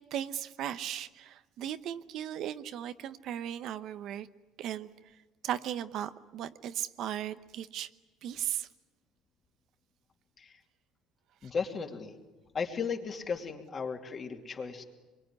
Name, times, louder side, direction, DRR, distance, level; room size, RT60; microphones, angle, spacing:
voice 1, 0.1-4.3 4.6-4.9 5.4-7.9 8.2-8.7 11.4-11.5, right 10 dB, 60° right, 11 dB, 1.0 m, -37 dB
voice 2, 11.4-12.2 12.5-14.8, left 5 dB, 30° left, 4 dB, 2.8 m, -35 dB
26.0 x 23.0 x 9.7 m, 1.2 s
cardioid pair, 125°, 0 cm